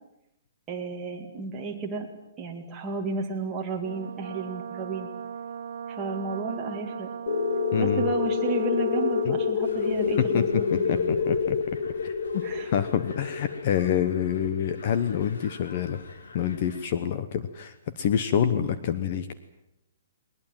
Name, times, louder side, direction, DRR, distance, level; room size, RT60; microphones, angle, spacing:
voice 1, 0.7-2.1 2.4-5.1 5.9-7.1 7.8-11.2 12.4-12.7, right 3 dB, 10° right, -1 dB, 2.4 m, -32 dB
Brass instrument, 3.8-9.7, right 7 dB, 55° right, 2.0 m, -38 dB
sound 1, 7.3-15.6, left 6 dB, 55° left, 1.2 m, -28 dB
voice 2, 7.7-8.1 9.2-9.4 10.3-10.4 10.7-11.6 12.0-12.4 12.7-16.0 16.3-19.3, left 9 dB, 30° left, 11 dB, 1.0 m, -27 dB
sound 2, 9.6-16.9, left 3 dB, 85° left, 4.2 m, -48 dB
20.5 x 20.0 x 9.2 m, 0.85 s
hypercardioid pair, 180°, 0 cm